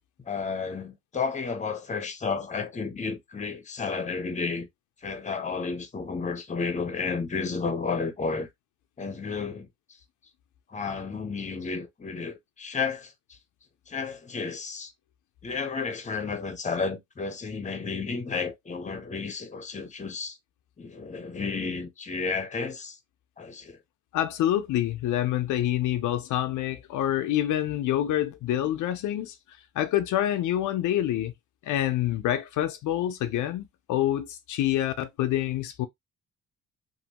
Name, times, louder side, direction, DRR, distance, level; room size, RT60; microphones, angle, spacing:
voice 1, 0.3-4.7 5.0-8.5 9.0-9.7 10.7-13.4 13.9-14.9 15.4-20.4 20.8-23.0 23.4-23.8, left 4 dB, 25° left, 0.8 m, -32 dB
voice 2, 24.1-29.3 29.8-31.3 31.6-35.9, left 12 dB, 80° left, 0.5 m, -27 dB
3.0 x 2.6 x 2.8 m
cardioid pair, 90°, 30 cm